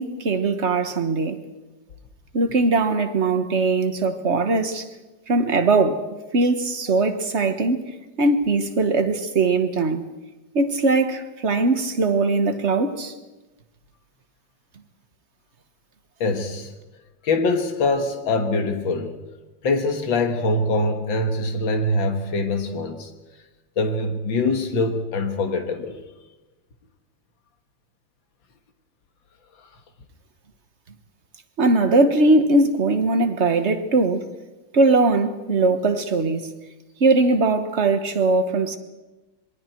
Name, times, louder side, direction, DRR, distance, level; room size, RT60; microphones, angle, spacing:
voice 1, 0.0-1.4 2.3-4.9 5.3-6.1 6.3-7.8 8.2-10.1 10.5-13.1 31.6-34.3 34.7-36.5 37.0-38.8, right 3 dB, 40° right, 1.4 m, -20 dB
voice 2, 16.2-16.7 17.2-19.2 19.6-23.1 23.8-26.0, left 2 dB, 90° left, 2.3 m, -23 dB
27.0 x 22.0 x 4.6 m
omnidirectional pair, 2.0 m